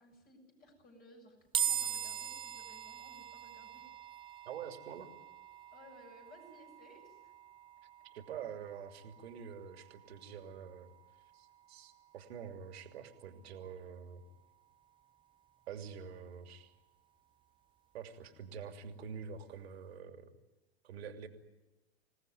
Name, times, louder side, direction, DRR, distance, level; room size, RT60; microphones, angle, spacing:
voice 1, 0.0-3.9 5.7-7.3, left 1 dB, 25° left, 1 dB, 7.6 m, -59 dB
sound 1, 1.5-14.9, right 9 dB, 15° right, 0.8 m, -43 dB
voice 2, 4.4-5.1 8.1-10.9 11.3-14.2 15.7-16.7 17.9-20.3 20.8-21.3, right 7 dB, 65° right, 5 dB, 3.1 m, -46 dB
27.0 x 18.0 x 9.4 m, 1.0 s
hypercardioid pair, 105°, 33 cm